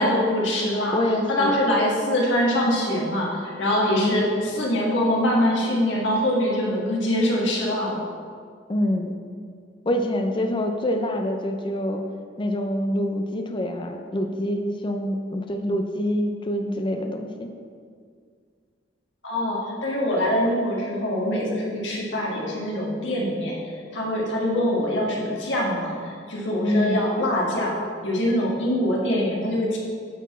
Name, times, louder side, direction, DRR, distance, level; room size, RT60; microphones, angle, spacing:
voice 1, 0.0-1.0 1.3-8.0 19.2-23.5 23.9-27.8 28.0-29.8, left 1 dB, 75° left, -4 dB, 1.6 m, -23 dB
voice 2, 0.9-1.6 4.0-4.3 8.7-9.1 9.9-12.0 12.4-17.5 26.6-27.1, left 1 dB, 25° left, 4 dB, 0.5 m, -26 dB
9.3 x 4.2 x 4.2 m, 2.1 s
head